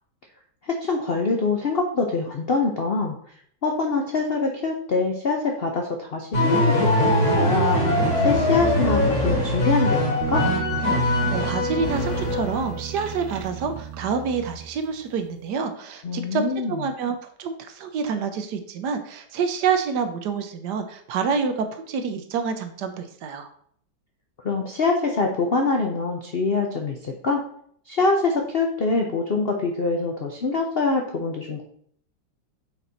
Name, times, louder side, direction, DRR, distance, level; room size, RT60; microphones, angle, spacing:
voice 1, 0.6-3.2 3.6-10.5 16.0-16.8 24.4-27.4 27.9-31.6, left 3 dB, 75° left, 2 dB, 0.5 m, -24 dB
sound 1, 6.3-12.8, left 1 dB, 40° left, 1.9 m, -22 dB
sound 2, 10.2-15.1, right 10 dB, 85° right, 1.5 m, -34 dB
voice 2, 11.1-23.5, right 5 dB, 70° right, 8 dB, 1.1 m, -27 dB
5.9 x 4.4 x 4.0 m, 0.63 s
omnidirectional pair, 2.1 m